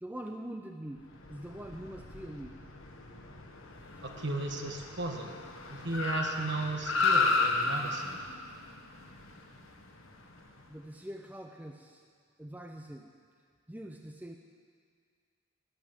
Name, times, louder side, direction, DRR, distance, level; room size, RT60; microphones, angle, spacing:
voice 1, 0.0-2.6 3.8-4.0 10.7-12.0 12.4-13.1 13.7-14.4, right 1 dB, 10° right, 4 dB, 0.5 m, -44 dB
Car, 1.1-10.6, left 3 dB, 75° left, 1.3 m, -34 dB
voice 2, 4.0-5.4 5.7-8.2, right 2 dB, 55° right, 3 dB, 1.4 m, -35 dB
14.5 x 8.2 x 9.0 m, 2.1 s
head